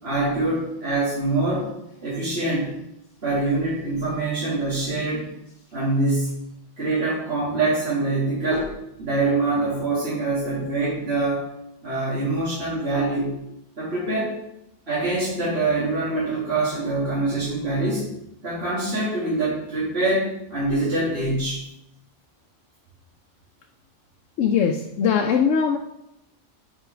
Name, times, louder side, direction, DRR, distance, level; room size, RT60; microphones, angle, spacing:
voice 1, 0.0-1.7 2.0-2.8 3.2-5.3 5.7-6.5 6.8-8.7 9.0-11.5 11.8-13.4 13.8-14.4 14.9-18.1 18.4-21.6, right 2 dB, 55° right, -10 dB, 2.3 m, -24 dB
voice 2, 24.4-25.8, left 7 dB, 85° left, 3 dB, 0.9 m, -21 dB
5.7 x 4.7 x 4.9 m, 0.84 s
omnidirectional pair, 1.2 m